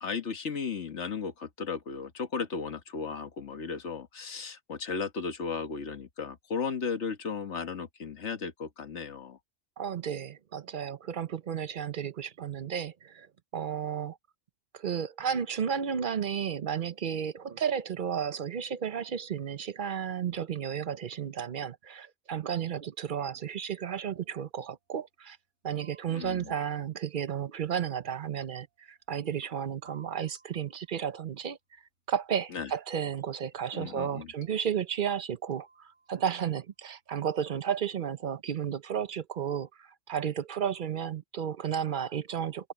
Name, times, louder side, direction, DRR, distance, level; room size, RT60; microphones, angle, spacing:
voice 1, 0.0-9.4 26.1-26.5 32.5-32.7 33.7-34.3, left 5 dB, 80° left, 1.8 m, -35 dB
voice 2, 9.8-13.3 13.5-14.2 14.7-25.4 25.6-31.6 32.1-42.7, right 8 dB, 50° right, 0.8 m, -33 dB
sound 1, 24.1-25.2 25.8-26.8 27.7-29.3 29.9-31.0 32.1-36.4, right 3 dB, 90° right, 8.2 m, -62 dB
omnidirectional pair, 1.2 m